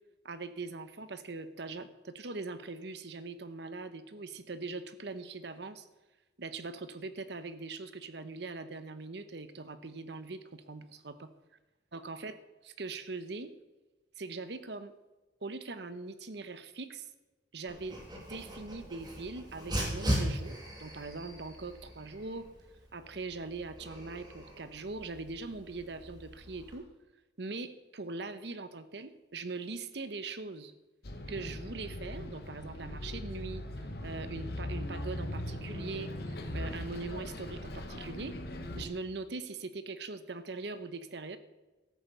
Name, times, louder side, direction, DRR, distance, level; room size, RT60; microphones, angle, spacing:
voice 1, 0.2-5.9 6.4-11.3 11.9-12.4 12.6-13.5 14.2-14.9 15.4-17.1 17.5-22.5 22.9-26.9 27.4-30.7 31.3-33.6 34.0-38.4 38.8-41.4, right 3 dB, 65° right, 12 dB, 0.9 m, -41 dB
Dog, 17.7-26.8, equal, 20° right, 2.7 m, -39 dB
Bus, 31.0-38.9, left 1 dB, 55° left, 1.2 m, -40 dB
13.5 x 8.2 x 6.7 m, 1.1 s
head